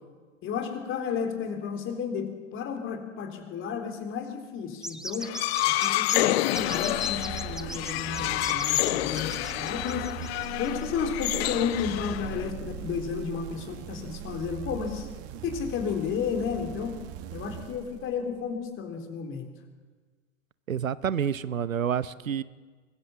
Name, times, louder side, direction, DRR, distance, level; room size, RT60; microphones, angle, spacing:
voice 1, 0.4-5.3 5.7-10.1 10.6-15.1 15.4-16.9 17.3-19.5, left 6 dB, 30° left, 5 dB, 3.8 m, -32 dB
sound 1, 4.8-10.9, right 1 dB, ahead, 0.7 m, -39 dB
sound 2, 5.2-12.5, left 17 dB, 50° left, 0.7 m, -28 dB
sound 3, 6.5-18.5, right 11 dB, 35° right, 1.4 m, -40 dB
voice 2, 20.7-22.4, right 8 dB, 90° right, 17 dB, 0.9 m, -28 dB
23.0 x 20.5 x 7.4 m, 1.4 s
hypercardioid pair, 105°, 39 cm